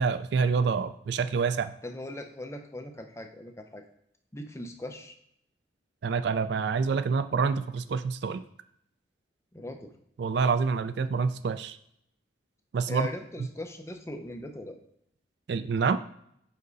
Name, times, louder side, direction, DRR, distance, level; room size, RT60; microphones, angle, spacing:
voice 1, 0.0-1.7 6.0-8.4 10.2-11.8 12.7-13.1 15.5-16.0, right 5 dB, 60° right, 12 dB, 0.3 m, -27 dB
voice 2, 1.8-3.8 4.3-5.2 9.5-9.9 12.9-14.8, left 1 dB, 15° left, 5 dB, 0.6 m, -39 dB
5.3 x 5.1 x 4.0 m, 0.71 s
head